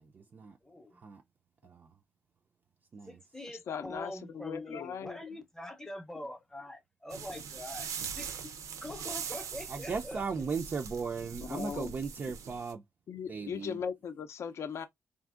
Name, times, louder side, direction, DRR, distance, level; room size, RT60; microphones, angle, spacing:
voice 1, 0.0-0.6 1.0-1.2 1.6-1.9 2.9-3.2 9.7-12.8 13.3-13.8, right 5 dB, 35° right, 0.3 m, -37 dB
voice 2, 0.6-1.0 3.0-8.5 8.8-10.3, left 1 dB, 10° left, 0.6 m, -44 dB
voice 3, 3.7-5.2 11.5-11.9 13.1-14.9, left 7 dB, 60° left, 0.4 m, -38 dB
sound 1, 7.1-12.7, right 7 dB, 85° right, 0.5 m, -42 dB
3.6 x 2.5 x 2.3 m
wide cardioid pair, 135°, 5 cm